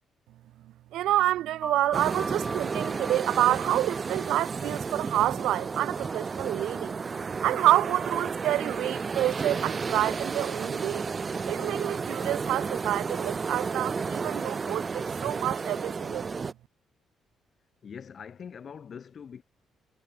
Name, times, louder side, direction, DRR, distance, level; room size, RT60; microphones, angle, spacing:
voice 1, 0.6-7.0 7.4-11.1 11.5-16.3, right 14 dB, 85° right, 0.6 m, -28 dB
sound 1, 1.6-6.8, right 2 dB, 20° right, 1.7 m, -43 dB
sound 2, 1.9-16.5, right 5 dB, 35° right, 0.3 m, -32 dB
voice 2, 17.8-19.4, left 7 dB, 50° left, 2.7 m, -43 dB
cardioid pair, 90°, 0 cm